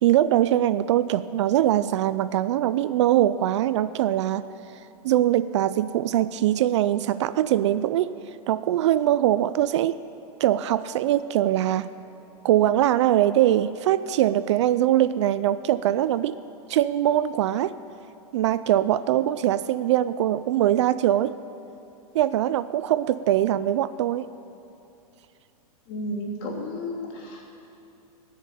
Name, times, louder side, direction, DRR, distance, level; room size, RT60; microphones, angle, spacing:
voice 1, 0.0-4.4 5.0-8.1 8.5-10.0 10.4-11.9 12.4-16.4 16.7-17.7 18.3-21.3 22.1-24.2, right 12 dB, 50° right, 15 dB, 0.4 m, -22 dB
voice 2, 25.9-27.5, left 1 dB, 40° left, -2 dB, 3.0 m, -33 dB
18.0 x 6.6 x 9.0 m, 2.7 s
supercardioid pair, 155°, 19 cm